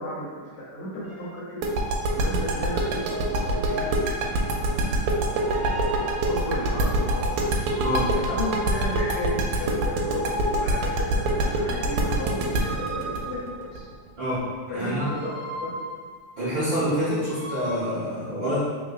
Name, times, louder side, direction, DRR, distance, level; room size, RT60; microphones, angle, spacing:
voice 1, 0.0-1.7 2.1-4.8 5.3-7.4 8.1-13.9 14.7-15.3 15.6-15.8 17.2-17.3, left 1 dB, 70° left, -6 dB, 1.8 m, -34 dB
sound 1, 1.0-1.4 2.8-4.3 5.3-6.5 7.7-9.4 10.0-11.2 12.4-14.0 14.8-16.2 17.2-17.8, equal, 45° right, 1.4 m, -36 dB
sound 2, 1.6-14.4, right 1 dB, 90° right, 2.1 m, -24 dB
voice 2, 7.8-8.1 14.2-14.4 14.7-15.1 16.4-18.6, equal, 65° right, -12 dB, 1.2 m, -26 dB
4.8 x 3.5 x 2.4 m, 1.5 s
omnidirectional pair, 3.6 m